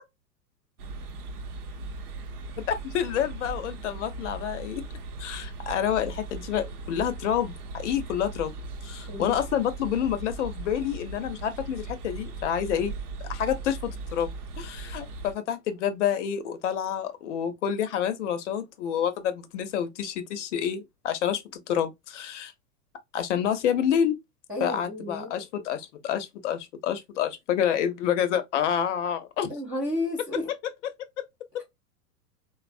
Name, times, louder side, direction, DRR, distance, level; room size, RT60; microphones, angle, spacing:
sound 1, 0.8-15.3, right 3 dB, 70° right, 0.7 m, -38 dB
voice 1, 2.6-4.8 5.2-8.5 8.8-12.9 13.3-22.5 23.1-24.2 24.6-29.5 30.6-30.9 31.5-31.6, left 9 dB, 50° left, 0.6 m, -28 dB
voice 2, 9.1-9.4 24.5-25.3 29.5-30.5, left 1 dB, 10° right, 0.3 m, -32 dB
3.2 x 2.0 x 2.4 m
figure-of-eight pair, 100°, 47 cm